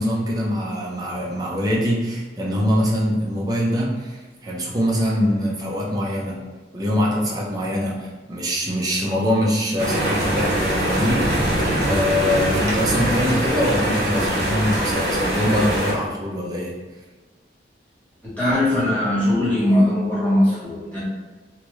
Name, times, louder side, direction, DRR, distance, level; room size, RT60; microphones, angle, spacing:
voice 1, 0.0-6.4 6.7-16.7, equal, 20° right, -4 dB, 0.5 m, -23 dB
sound 1, 9.8-15.9, right 1 dB, 65° right, 0.7 m, -22 dB
voice 2, 18.2-21.0, left 1 dB, 10° left, -10 dB, 1.1 m, -20 dB
3.0 x 2.4 x 3.1 m, 1.3 s
head